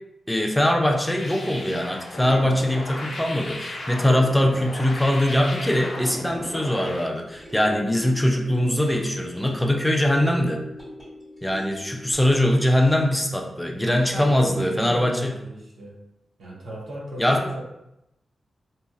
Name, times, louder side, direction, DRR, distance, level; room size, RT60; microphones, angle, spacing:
voice 1, 0.3-10.6 11.4-15.3 17.2-17.5, left 1 dB, 10° left, 2 dB, 0.4 m, -22 dB
sound 1, 1.0-7.1, left 2 dB, 75° left, 0.5 m, -36 dB
sound 2, 7.0-12.9, left 2 dB, 25° right, 1.4 m, -41 dB
voice 2, 13.8-16.0 16.4-17.6, equal, 85° right, -4 dB, 0.8 m, -35 dB
2.8 x 2.5 x 2.3 m, 0.86 s
wide cardioid pair, 95°, 0 cm